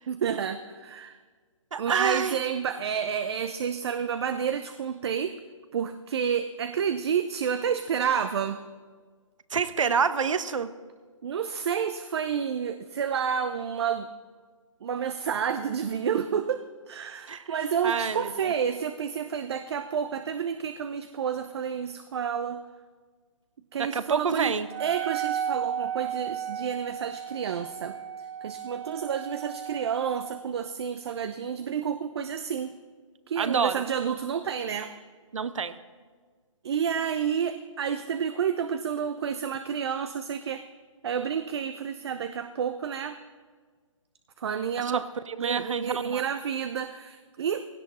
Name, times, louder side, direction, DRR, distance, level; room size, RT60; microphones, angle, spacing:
voice 1, 0.1-1.2 1.8-5.4 5.7-8.6 11.2-14.1 14.8-22.6 23.7-24.5 24.8-32.8 33.3-34.9 36.6-40.6 41.0-43.2 44.4-45.0 45.4-47.6, right 7 dB, 50° right, 10 dB, 0.8 m, -30 dB
voice 2, 1.7-2.4 9.5-10.7 17.3-17.6 17.8-18.5 23.8-24.7 33.4-33.8 35.3-35.7 44.9-46.2, right 6 dB, 70° right, 13 dB, 1.1 m, -28 dB
Wind instrument woodwind instrument, 24.7-30.4, right 9 dB, 35° right, 1.3 m, -34 dB
17.0 x 16.0 x 4.3 m, 1.5 s
hypercardioid pair, 145°, 17 cm